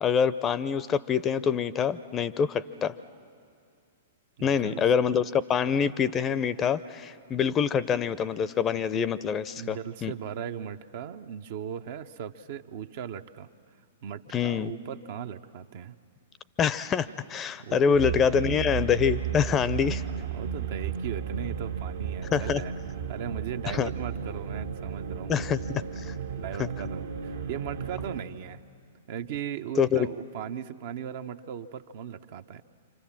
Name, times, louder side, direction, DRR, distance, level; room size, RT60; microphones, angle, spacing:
voice 1, 0.0-2.9 4.4-10.1 14.3-14.7 16.6-20.0 22.3-22.6 23.7-23.9 25.3-26.1 26.6-26.7 29.8-30.1, left 7 dB, 25° left, 17 dB, 0.6 m, -26 dB
voice 2, 4.4-4.8 9.6-13.5 14.0-15.9 17.6-18.0 20.3-22.7 23.1-25.4 26.4-28.6 29.1-32.6, right 9 dB, 55° right, 9 dB, 0.8 m, -38 dB
sound 1, 17.9-28.2, right 7 dB, 70° right, 1.5 m, -34 dB
27.5 x 25.5 x 7.4 m, 2.3 s
figure-of-eight pair, 110°, 0 cm